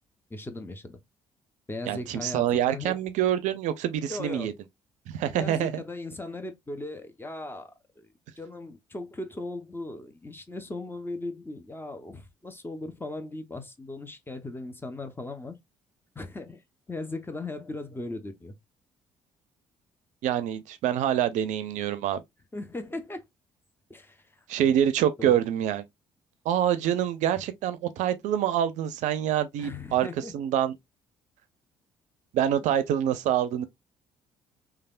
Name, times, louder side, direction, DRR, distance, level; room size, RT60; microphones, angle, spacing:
voice 1, 0.3-1.0 1.7-3.0 4.1-4.5 5.3-8.1 8.4-15.6 16.1-16.6 16.9-18.5 22.5-23.2 23.9-24.2 24.6-24.7 25.2-25.3 29.6-30.3, left 2 dB, 15° left, 0.7 m, -38 dB
voice 2, 1.9-4.5 5.1-5.8 20.2-22.2 24.5-25.8 26.5-30.7 32.3-33.6, right 10 dB, 65° right, 0.4 m, -26 dB
3.3 x 2.3 x 2.3 m
hypercardioid pair, 50°, 13 cm